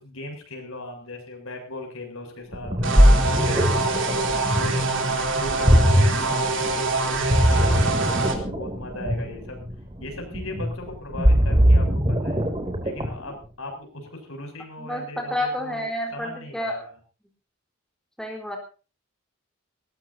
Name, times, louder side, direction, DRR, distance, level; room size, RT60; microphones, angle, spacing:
voice 1, 0.0-3.0 3.4-9.6 10.0-12.5 12.8-16.8, left 2 dB, 75° left, 3 dB, 7.3 m, -38 dB
Ocean, 2.5-13.3, equal, 25° right, 2.9 m, -21 dB
sound 1, 2.8-8.3, right 2 dB, 60° right, 3.4 m, -24 dB
voice 2, 14.8-16.9 18.2-18.6, left 1 dB, 5° left, 1 dB, 4.1 m, -30 dB
20.5 x 19.0 x 2.8 m, 0.36 s
head